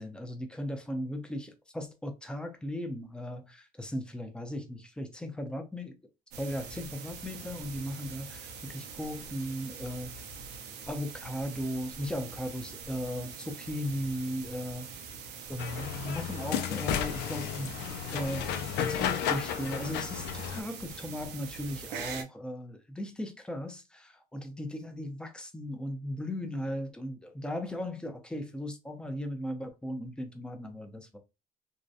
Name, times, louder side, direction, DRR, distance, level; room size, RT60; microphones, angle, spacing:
voice 1, 0.0-6.0 6.4-10.1 10.9-14.9 15.5-17.7 18.1-31.2, left 1 dB, 5° left, 0.5 m, -37 dB
sound 1, 6.3-22.2, right 5 dB, 80° right, 0.6 m, -44 dB
sound 2, 15.6-20.6, left 9 dB, 75° left, 0.4 m, -33 dB
2.7 x 2.1 x 2.4 m
cardioid pair, 110°, 17 cm